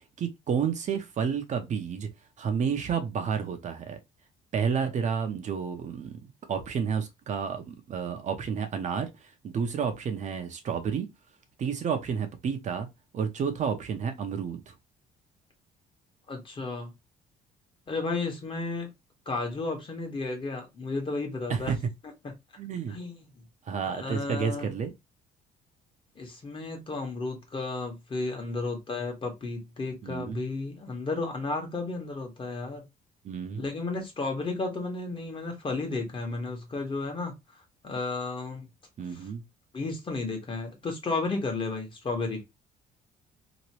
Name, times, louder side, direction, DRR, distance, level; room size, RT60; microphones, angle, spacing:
voice 1, 0.2-2.1 2.4-4.0 4.5-11.1 11.6-12.9 13.1-14.7 21.5-21.8 22.6-22.9 23.7-24.9 30.0-30.4 33.2-33.6 39.0-39.4, right 6 dB, 45° right, 0.6 m, -30 dB
voice 2, 16.3-16.9 17.9-18.9 19.3-21.7 22.9-23.3 23.9-24.7 26.2-32.8 33.6-38.7 39.1-39.3 39.7-42.4, left 3 dB, 30° left, 1.2 m, -33 dB
3.0 x 2.5 x 2.9 m
cardioid pair, 110°, 17 cm